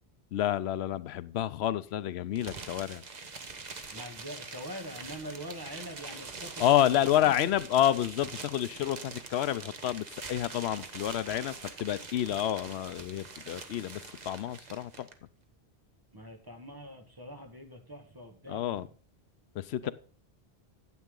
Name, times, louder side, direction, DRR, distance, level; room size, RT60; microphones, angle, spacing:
voice 1, 0.3-3.0 6.6-11.5 11.8-15.1 18.5-18.9 19.5-19.9, left 11 dB, 85° left, 0.8 m, -29 dB
sound 1, 2.4-15.1, right 4 dB, 45° right, 1.1 m, -44 dB
voice 2, 3.9-7.6 16.1-18.9 19.8-19.9, equal, 20° right, 1.6 m, -44 dB
9.6 x 8.1 x 3.7 m
omnidirectional pair, 1.1 m